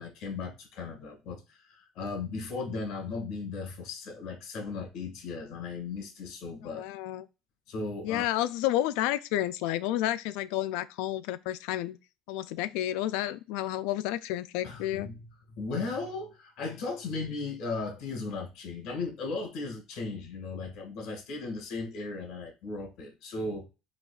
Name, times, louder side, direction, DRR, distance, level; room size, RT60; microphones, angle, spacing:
voice 1, 0.0-6.8 7.7-8.3 14.6-15.2 15.5-23.7, left 3 dB, 65° left, 1.7 m, -36 dB
voice 2, 6.6-7.3 8.0-12.0 12.3-15.1, left 13 dB, 85° left, 0.3 m, -30 dB
4.0 x 2.9 x 2.3 m
cardioid pair, 135°, 0 cm